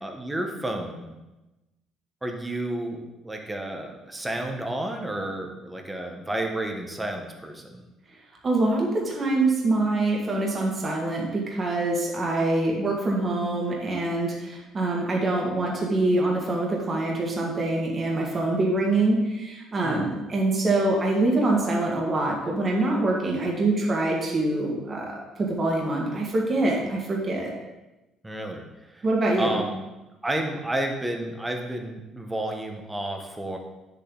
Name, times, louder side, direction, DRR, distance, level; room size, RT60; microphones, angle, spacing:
voice 1, 0.0-1.1 2.2-7.8 19.8-20.1 28.2-28.6 28.9-29.0 29.4-29.8 30.2-33.6, right 1 dB, 10° right, 3 dB, 1.0 m, -31 dB
voice 2, 8.4-27.5 29.0-29.6, right 2 dB, 25° right, -2 dB, 1.7 m, -25 dB
9.9 x 7.0 x 3.9 m, 1.0 s
cardioid pair, 165°, 0 cm